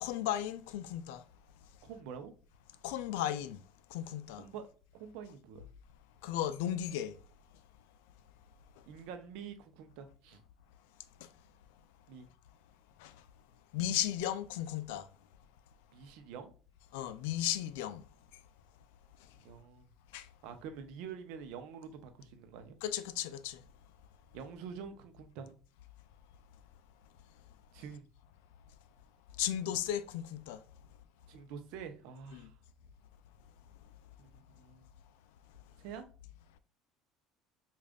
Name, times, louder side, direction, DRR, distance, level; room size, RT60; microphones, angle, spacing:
voice 1, 0.0-1.2 2.8-3.6 3.9-4.4 6.2-7.2 8.8-8.9 11.2-11.3 13.0-13.3 13.7-15.1 16.9-18.1 18.3-18.4 19.2-19.4 20.1-20.3 22.8-23.6 29.4-30.6 32.3-32.5, left 11 dB, 85° left, 0.4 m, -35 dB
voice 2, 1.8-2.3 4.4-4.7 4.9-5.7 8.9-10.4 12.1-12.3 15.9-16.5 19.4-19.9 20.4-22.7 24.3-25.5 27.7-28.1 31.3-32.5 34.2-34.9 35.8-36.0, right 7 dB, 75° right, 0.6 m, -47 dB
5.1 x 2.4 x 2.3 m
supercardioid pair, 115°, 0 cm